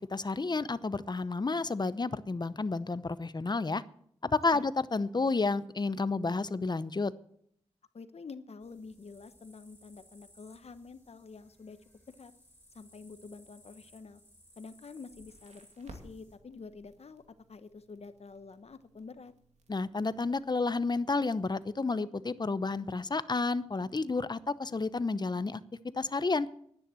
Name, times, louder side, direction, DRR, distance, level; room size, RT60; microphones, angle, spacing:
voice 1, 0.1-3.8 4.3-7.1 19.7-25.6 26.0-26.5, left 3 dB, 40° left, 16 dB, 0.8 m, -31 dB
voice 2, 7.9-11.8 12.1-12.3 12.7-14.2 14.6-17.2 17.5-19.3, left 4 dB, 65° left, 12 dB, 1.1 m, -48 dB
sound 1, 8.6-16.3, equal, 15° left, 6.0 m, -62 dB
Crackle, 15.1-21.6, right 2 dB, 80° right, 2.5 m, -58 dB
11.0 x 9.8 x 7.6 m, 0.67 s
cardioid pair, 55°, 11 cm